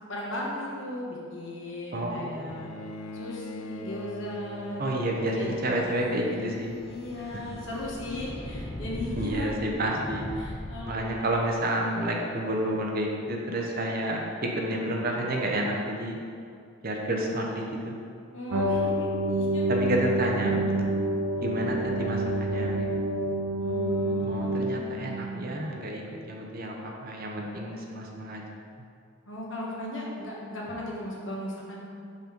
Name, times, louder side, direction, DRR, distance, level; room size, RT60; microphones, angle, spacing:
voice 1, 0.0-2.7 3.1-6.2 6.9-9.5 10.4-11.4 18.3-19.7 23.6-25.2 29.3-31.9, left 1 dB, 60° left, -4 dB, 1.2 m, -37 dB
voice 2, 1.9-2.7 4.8-6.8 9.2-10.3 10.8-16.2 16.8-18.0 19.7-20.8 21.4-22.9 24.2-28.4, right 1 dB, 45° right, 0 dB, 0.7 m, -30 dB
Bowed string instrument, 2.5-7.9 9.0-9.1, left 2 dB, 85° left, 0.4 m, -42 dB
sound 1, 5.2-11.5, left 1 dB, 25° left, 0.4 m, -40 dB
sound 2, 18.5-25.6, right 1 dB, 80° right, 0.5 m, -28 dB
5.4 x 3.9 x 5.1 m, 2.3 s
head